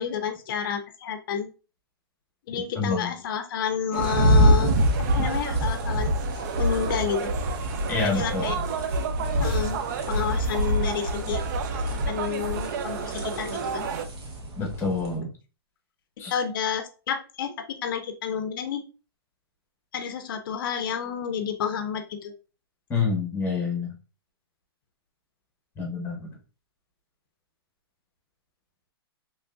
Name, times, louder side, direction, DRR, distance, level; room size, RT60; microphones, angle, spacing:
voice 1, 0.0-1.5 2.5-4.7 5.0-6.1 6.6-7.3 8.0-8.5 9.4-9.8 10.1-11.4 11.8-13.9 16.3-18.8 19.9-22.3, left 8 dB, 55° left, 8 dB, 0.5 m, -30 dB
voice 2, 2.7-3.1 7.9-8.6 14.6-15.3 16.2-16.4 22.9-23.9 25.8-26.3, left 4 dB, 15° left, 0 dB, 1.1 m, -27 dB
sound 1, 3.9-14.0, right 7 dB, 45° right, 0.4 m, -33 dB
sound 2, 4.0-15.1, equal, 80° right, 1.4 m, -26 dB
3.7 x 3.1 x 2.4 m, 0.34 s
hypercardioid pair, 145°, 13 cm